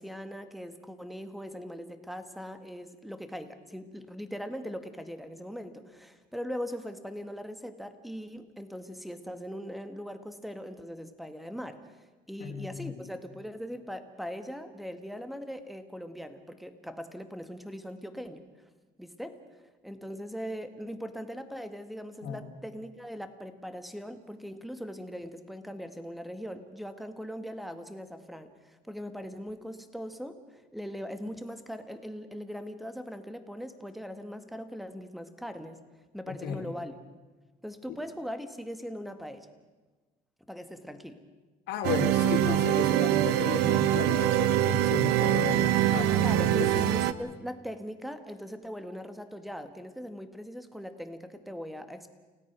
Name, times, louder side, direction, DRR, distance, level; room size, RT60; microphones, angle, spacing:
voice 1, 0.0-11.8 12.3-18.4 19.0-35.8 36.1-36.9 37.6-39.5 40.5-41.2 43.6-43.8 46.1-52.1, equal, ahead, 8 dB, 1.9 m, -40 dB
voice 2, 12.4-12.9 22.2-22.5 36.4-36.7 41.7-46.1 46.6-46.7, left 6 dB, 85° left, 0 dB, 3.5 m, -33 dB
sound 1, 41.8-47.1, right 13 dB, 85° right, 0.9 m, -24 dB
29.5 x 17.5 x 6.2 m, 1.3 s
cardioid pair, 110°, 17 cm